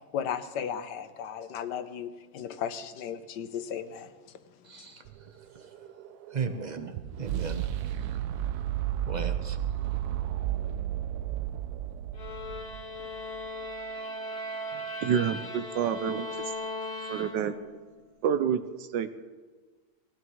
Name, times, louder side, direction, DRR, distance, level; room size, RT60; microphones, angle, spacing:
voice 1, 0.1-4.2 4.8-4.9, left 8 dB, 75° left, 11 dB, 1.4 m, -35 dB
voice 2, 4.6-5.0 5.5-5.7 6.3-7.7 9.1-9.6, right 5 dB, 40° right, 7 dB, 0.6 m, -36 dB
sound 1, 5.1-13.2, right 12 dB, 70° right, 1.1 m, -33 dB
sound 2, 12.1-17.8, left 1 dB, 40° left, 1.9 m, -38 dB
voice 3, 15.0-16.3 17.1-17.5 18.2-19.1, right 8 dB, 85° right, 10 dB, 1.3 m, -28 dB
19.0 x 15.5 x 3.1 m, 1.4 s
omnidirectional pair, 1.9 m